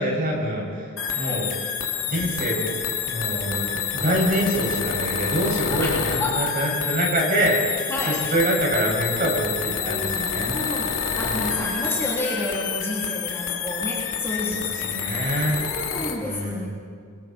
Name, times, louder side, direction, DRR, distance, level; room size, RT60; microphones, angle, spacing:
voice 1, 0.0-1.5 2.1-2.8 3.1-10.6 11.2-11.4 14.5-15.6 16.2-16.7, right 1 dB, 40° right, -2 dB, 7.2 m, -25 dB
sound 1, 1.0-16.2, left 8 dB, 65° left, 2.5 m, -28 dB
voice 2, 6.2-6.5 7.9-8.2 9.7-14.9 15.6-16.7, left 1 dB, 10° left, -5 dB, 3.6 m, -30 dB
28.5 x 24.0 x 4.6 m, 2.2 s
head